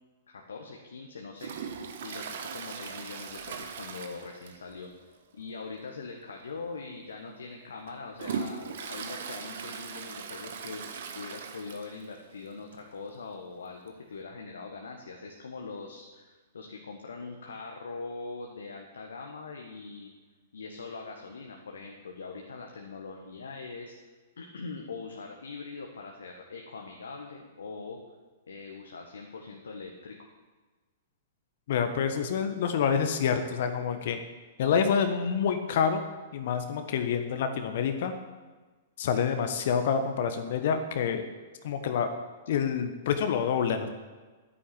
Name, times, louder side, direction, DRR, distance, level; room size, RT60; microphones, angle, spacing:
voice 1, 0.3-1.5 2.0-20.1 20.5-23.9 24.4-28.0 28.5-30.2, left 4 dB, 70° left, 2 dB, 1.5 m, -42 dB
Toilet flush, 1.4-4.8 5.1-5.2 5.6-5.7 6.6-6.7 7.2-12.1 12.5-12.6 12.7-12.8 13.9-14.0, right 6 dB, 60° right, 1.4 m, -39 dB
voice 2, 31.7-34.2 34.6-36.0 36.3-38.1 39.0-41.2 41.6-42.1 42.5-43.9, left 7 dB, 55° left, 7 dB, 1.2 m, -27 dB
10.0 x 9.9 x 8.6 m, 1.3 s
figure-of-eight pair, 110°, 0 cm